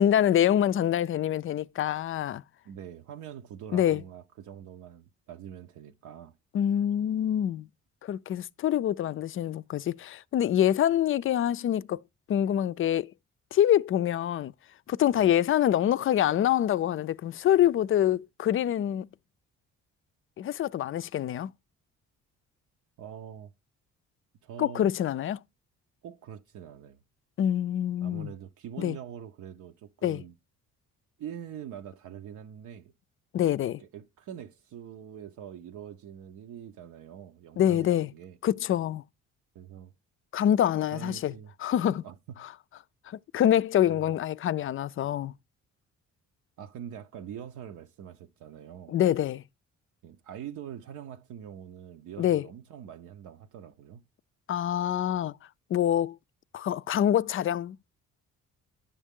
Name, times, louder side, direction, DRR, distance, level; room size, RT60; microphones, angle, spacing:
voice 1, 0.0-2.4 3.7-4.0 6.5-7.7 8.0-12.0 12.3-13.1 13.5-14.5 14.9-19.1 20.4-21.5 24.6-25.4 27.4-28.3 28.8-29.0 30.0-30.2 33.3-33.8 37.6-38.1 38.4-39.0 40.3-41.3 41.6-42.0 43.1-45.3 48.9-49.4 52.2-52.5 54.5-55.4 55.7-56.2 56.5-57.8, left 11 dB, 45° left, 0.4 m, -25 dB
voice 2, 2.6-6.3 15.1-15.4 23.0-23.5 24.4-24.9 26.0-27.0 28.0-30.3 31.2-32.9 33.8-38.4 39.5-39.9 40.9-41.5 42.0-42.4 43.8-44.0 46.6-49.0 50.0-54.0, right 9 dB, 80° right, 0.8 m, -44 dB
10.0 x 7.0 x 3.6 m
cardioid pair, 90°, 30 cm